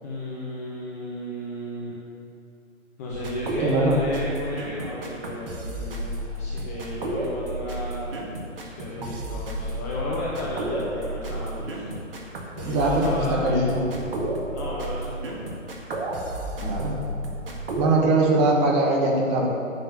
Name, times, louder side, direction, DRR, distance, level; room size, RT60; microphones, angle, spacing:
voice 1, 0.0-1.9 3.0-8.2 8.6-11.9 12.5-13.6 14.5-15.5, left 1 dB, 10° left, -4 dB, 0.7 m, -33 dB
sound 1, 3.1-17.9, right 1 dB, 45° right, 2.0 m, -32 dB
voice 2, 3.6-4.0 9.0-9.1 12.6-13.9 16.6-17.0 17.8-19.5, right 2 dB, 15° right, -1 dB, 1.3 m, -22 dB
11.0 x 6.8 x 8.6 m, 2.6 s
figure-of-eight pair, 135°, 39 cm